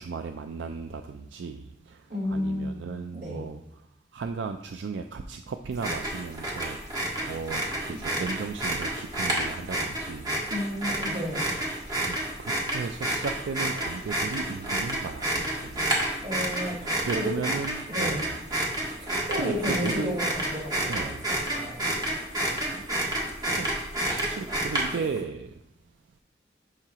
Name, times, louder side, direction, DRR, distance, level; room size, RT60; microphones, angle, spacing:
voice 1, 0.0-2.1 2.3-3.6 4.1-6.8 7.2-10.3 12.1-15.9 17.0-18.3 19.4-20.1 20.9-21.2 22.8-22.9 23.5-23.7 24.1-25.6, right 5 dB, 85° right, 6 dB, 0.4 m, -35 dB
voice 2, 2.1-2.8 3.1-3.4 10.5-11.4 16.2-17.4 17.9-18.3 19.3-21.8 24.9-25.0, equal, 55° right, -6 dB, 3.3 m, -32 dB
sound 1, 5.7-25.2, right 1 dB, 20° right, 1.5 m, -30 dB
10.5 x 5.7 x 2.9 m, 0.81 s
head